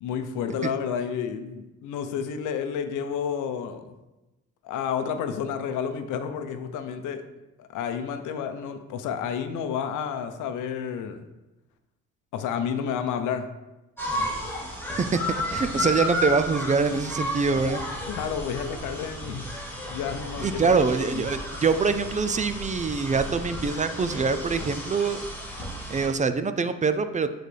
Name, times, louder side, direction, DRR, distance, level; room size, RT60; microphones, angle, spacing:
voice 1, 0.0-4.0 4.6-7.2 7.6-11.2 12.3-13.5 18.1-19.4 19.9-21.3, left 7 dB, 90° left, 9 dB, 0.7 m, -30 dB
sound 1, 14.0-26.1, equal, 5° left, 2.1 m, -33 dB
voice 2, 15.5-17.8 20.4-25.2 25.9-27.3, right 4 dB, 25° right, 10 dB, 0.4 m, -24 dB
8.8 x 3.9 x 3.3 m, 1.0 s
cardioid pair, 90°, 30 cm